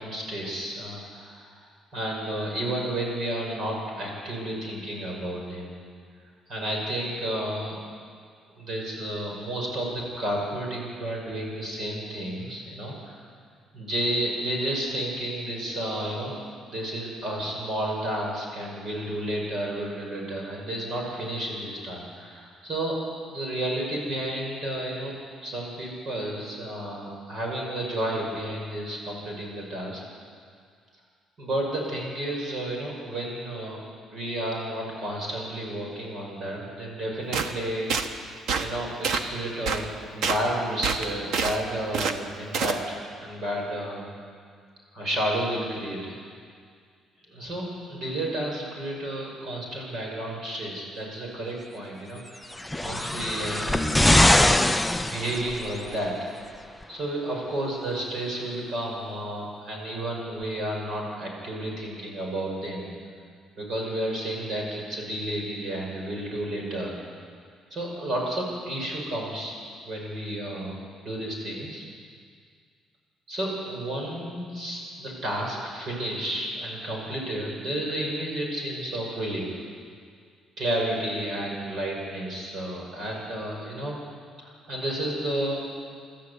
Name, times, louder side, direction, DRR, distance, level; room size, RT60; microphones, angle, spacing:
voice 1, 0.0-1.6 1.9-5.7 6.5-7.8 8.5-13.2 13.7-16.3 16.7-23.0 23.3-25.1 25.4-30.0 31.4-33.8 34.1-44.1 44.9-46.2 47.3-54.4 55.0-56.2 56.9-62.9 63.6-67.0 67.7-70.7 71.0-71.8 73.3-79.6 80.6-84.0 84.4-85.7, right 1 dB, 40° right, -1 dB, 6.0 m, -31 dB
sound 1, 37.3-37.5 37.9-38.1 38.5-38.7 39.0-39.3 39.7-39.8 40.2-40.4 40.8-41.6 41.9-42.2 42.5-42.8, right 5 dB, 60° right, 1.3 m, -26 dB
sound 2, 52.5-55.9 56.8-56.9, left 1 dB, 5° left, 0.5 m, -22 dB
25.0 x 13.5 x 8.4 m, 2.1 s
cardioid pair, 175°, 0 cm